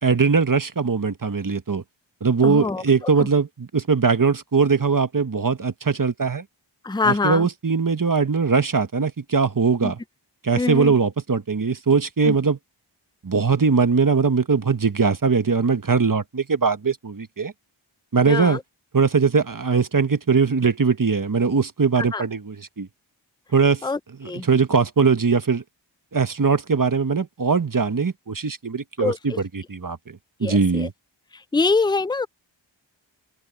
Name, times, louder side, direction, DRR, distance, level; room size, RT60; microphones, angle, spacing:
voice 1, 0.0-1.8 2.2-6.4 7.0-10.0 10.4-12.6 13.2-17.5 18.1-18.6 18.9-22.9 23.5-23.8 24.2-25.6 26.1-30.9, right 5 dB, 45° right, 1.3 m, -21 dB
voice 2, 2.4-2.8 3.2-3.3 6.8-7.5 9.8-9.9 10.6-11.0 12.2-12.4 18.3-18.6 22.0-22.2 23.8-24.5 29.0-29.4 30.4-30.9 31.5-32.3, left 3 dB, 10° left, 0.5 m, -24 dB
open air
cardioid pair, 45°, 46 cm